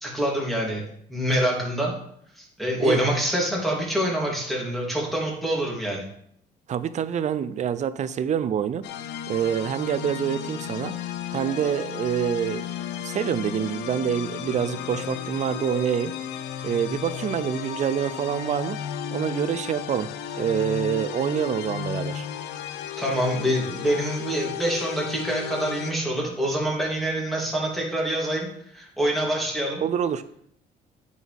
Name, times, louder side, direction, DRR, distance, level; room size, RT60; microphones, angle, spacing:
voice 1, 0.0-0.8 1.1-1.9 2.4-6.0 23.0-29.8, equal, ahead, -3 dB, 3.0 m, -26 dB
voice 2, 6.7-8.9 9.3-10.9 11.3-16.1 16.6-18.8 19.1-20.1 20.3-22.3 29.8-30.2, right 8 dB, 45° right, 14 dB, 0.5 m, -26 dB
sound 1, 8.8-25.9, left 9 dB, 85° left, 0.7 m, -34 dB
9.1 x 6.2 x 3.5 m, 0.68 s
cardioid pair, 110°, 17 cm